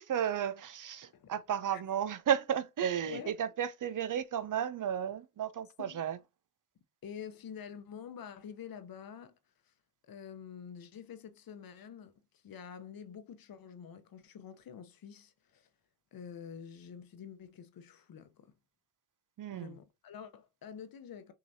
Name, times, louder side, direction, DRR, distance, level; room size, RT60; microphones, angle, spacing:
voice 1, 0.0-6.2 19.4-19.8, right 9 dB, 55° right, 0.6 m, -33 dB
voice 2, 7.0-9.3 9.7-9.8 10.0-12.1 12.4-15.7 16.1-18.5 19.5-21.3, left 7 dB, 60° left, 0.8 m, -47 dB
6.2 x 2.9 x 2.7 m
supercardioid pair, 50°, 39 cm